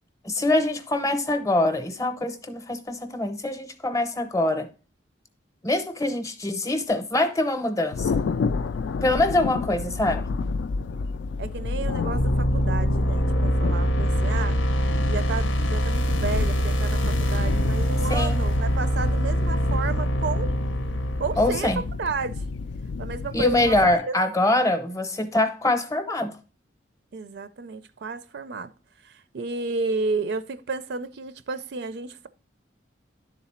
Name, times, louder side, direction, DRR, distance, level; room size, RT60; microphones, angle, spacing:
voice 1, 0.2-4.7 5.6-8.2 9.0-10.2 18.1-18.4 21.4-21.8 23.3-26.3, left 2 dB, 15° left, 0.7 m, -24 dB
Thunder, 7.9-23.9, left 4 dB, 70° left, 0.3 m, -30 dB
voice 2, 11.4-14.6 15.1-20.5 21.2-22.4 23.0-23.8 24.0-24.1 27.1-28.7 29.0-32.3, right 4 dB, 65° right, 0.4 m, -32 dB
sound 1, 12.1-22.0, equal, 90° left, 0.8 m, -24 dB
10.5 x 3.9 x 4.2 m
head